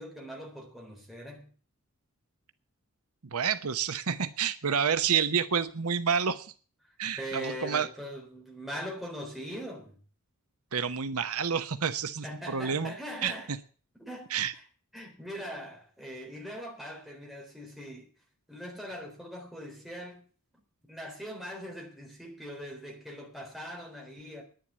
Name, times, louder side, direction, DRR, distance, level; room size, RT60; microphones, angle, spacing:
voice 1, 0.0-1.5 7.2-10.0 12.2-13.5 14.0-14.6 14.9-18.1 18.5-20.3 20.9-24.4, equal, ahead, 3.8 m, -41 dB
voice 2, 3.3-6.5 7.0-7.9 10.7-12.9 13.2-13.6 14.3-14.5, right 7 dB, 80° right, 0.9 m, -29 dB
10.5 x 9.8 x 8.9 m
head